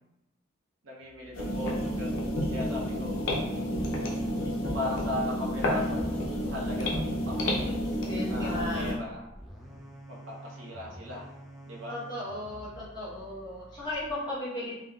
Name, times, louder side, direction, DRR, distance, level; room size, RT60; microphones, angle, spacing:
voice 1, 0.8-3.2 3.5-3.7 4.7-7.8 8.3-9.2 10.1-11.3 11.6-11.9, left 2 dB, 80° right, -4 dB, 0.7 m, -37 dB
sound 1, 1.0-14.1, right 1 dB, ahead, 0.3 m, -48 dB
sound 2, 1.3-8.9, equal, 80° left, 0.6 m, -30 dB
voice 2, 8.0-9.0 11.9-14.7, left 1 dB, 20° left, -9 dB, 0.9 m, -36 dB
3.6 x 2.0 x 2.3 m, 0.87 s
head